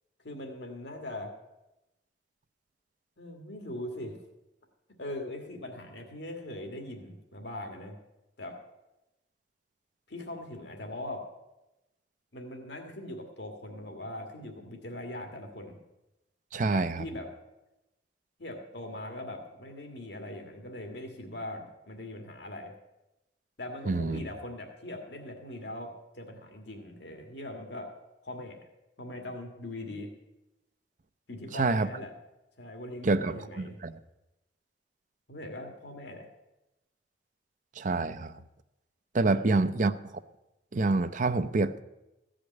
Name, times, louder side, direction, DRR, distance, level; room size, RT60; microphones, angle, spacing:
voice 1, 0.2-1.3 3.2-4.2 5.0-8.0 8.4-8.6 10.1-11.3 12.3-15.8 16.7-17.3 18.4-22.7 23.6-27.9 28.2-28.6 29.0-30.1 31.3-32.1 32.6-33.8 35.3-36.3 39.3-39.8, left 1 dB, 75° left, 3 dB, 1.8 m, -41 dB
voice 2, 16.5-17.0 23.9-24.2 31.5-31.9 33.0-34.0 37.8-38.3 39.1-39.9 40.7-41.8, right 3 dB, 45° right, 11 dB, 0.6 m, -27 dB
15.0 x 5.1 x 9.3 m, 0.95 s
head